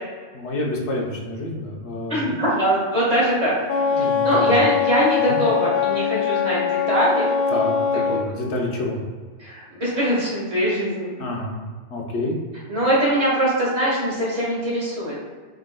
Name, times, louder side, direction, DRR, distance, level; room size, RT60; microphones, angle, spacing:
voice 1, 0.3-2.2 3.9-4.5 5.2-5.4 7.5-9.0 11.2-11.6 11.9-12.4, left 1 dB, 90° left, -2 dB, 1.2 m, -28 dB
voice 2, 2.1-3.5 4.0-7.3 8.1-8.3 9.4-11.2 12.7-15.1, right 1 dB, 30° right, -6 dB, 1.7 m, -22 dB
Wind instrument woodwind instrument, 3.7-8.3, left 7 dB, 70° left, 0.9 m, -22 dB
4.9 x 4.6 x 2.2 m, 1.5 s
omnidirectional pair, 1.1 m